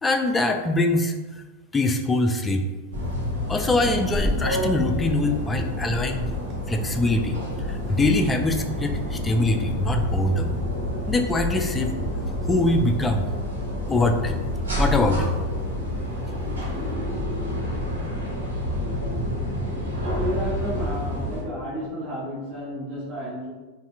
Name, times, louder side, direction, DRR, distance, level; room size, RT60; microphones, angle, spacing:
voice 1, 0.0-1.1 1.7-2.7 3.5-6.3 6.7-10.6 11.1-11.9 12.5-13.3 13.9-14.4 14.8-15.3, left 2 dB, 15° left, 6 dB, 0.3 m, -23 dB
sound 1, 2.9-21.4, left 1 dB, 70° right, 1.2 m, -28 dB
sound 2, 4.1-4.5 5.5-5.7 6.0-6.5 7.7-8.4, left 1 dB, 5° right, 0.8 m, -31 dB
voice 2, 20.0-23.5, equal, 45° right, -7 dB, 1.4 m, -31 dB
4.1 x 2.6 x 2.4 m, 1.2 s
figure-of-eight pair, 90°, 0 cm